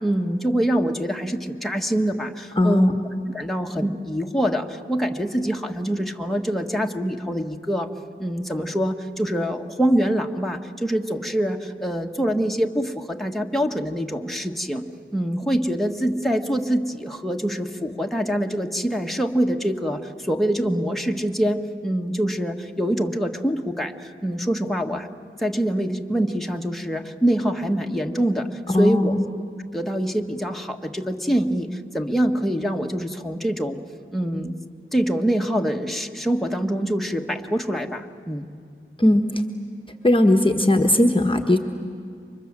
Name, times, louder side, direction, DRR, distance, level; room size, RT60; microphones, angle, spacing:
voice 1, 0.0-2.9 3.3-7.9 8.2-14.9 15.1-25.1 25.4-29.1 29.7-33.8 34.1-34.5 34.9-38.5, equal, ahead, 2 dB, 1.6 m, -25 dB
voice 2, 2.6-2.9 28.7-29.2 39.0-39.3 40.0-41.6, left 1 dB, 25° left, 4 dB, 1.3 m, -18 dB
29.5 x 24.5 x 7.5 m, 2.3 s
wide cardioid pair, 60°, 21 cm